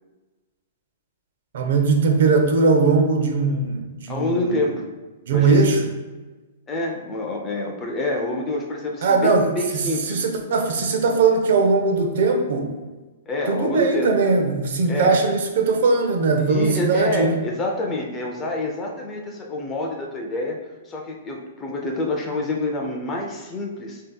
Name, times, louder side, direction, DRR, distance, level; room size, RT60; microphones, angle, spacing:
voice 1, 1.5-4.6 5.3-5.8 9.0-12.7 13.5-17.4, right 4 dB, 60° right, 3 dB, 0.6 m, -20 dB
voice 2, 4.1-4.8 5.3-5.8 6.7-10.2 13.3-14.1 14.9-15.2 16.4-20.6 20.8-24.0, left 2 dB, 15° left, 1 dB, 0.4 m, -27 dB
7.2 x 2.7 x 2.2 m, 1.2 s
hypercardioid pair, 170°, 0 cm